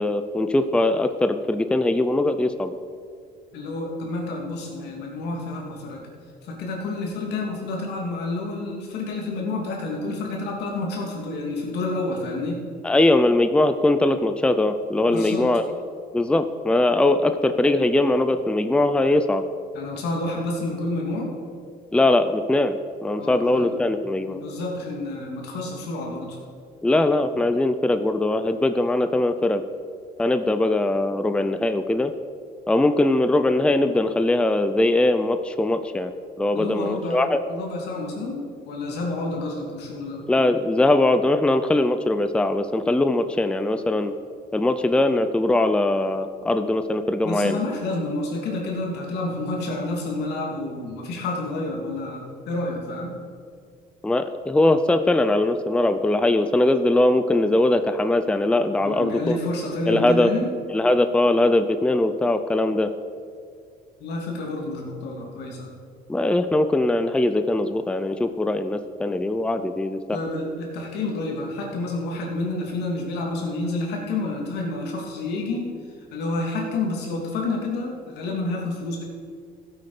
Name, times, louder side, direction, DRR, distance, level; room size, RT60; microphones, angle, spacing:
voice 1, 0.0-2.8 12.8-15.7 16.1-19.4 21.9-24.4 26.8-29.6 30.2-32.1 32.7-36.1 36.4-37.4 40.3-44.1 44.5-47.6 54.0-59.4 59.9-60.3 60.7-62.9 66.1-70.2, left 2 dB, 5° left, 9 dB, 0.5 m, -21 dB
voice 2, 3.5-6.0 6.4-12.6 15.1-15.5 19.7-21.3 23.2-23.7 24.3-26.4 36.5-40.3 47.2-53.1 58.8-60.5 64.0-65.7 70.1-75.7 76.1-79.0, left 2 dB, 80° left, -1 dB, 2.8 m, -29 dB
15.0 x 8.4 x 5.1 m, 2.2 s
cardioid pair, 110°, 17 cm